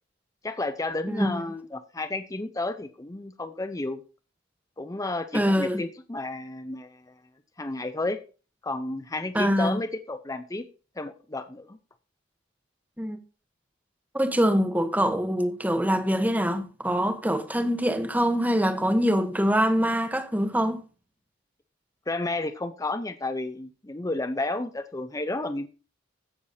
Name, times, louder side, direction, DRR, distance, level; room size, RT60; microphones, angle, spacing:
voice 1, 0.4-4.0 4.8-7.2 7.6-8.2 8.6-10.6 11.0-11.8 22.1-25.7, left 2 dB, 15° left, 0.7 m, -32 dB
voice 2, 1.1-1.4 5.3-5.8 9.3-9.8 13.0-13.2 14.1-20.8, equal, 10° right, 1.2 m, -24 dB
16.0 x 6.7 x 2.7 m
head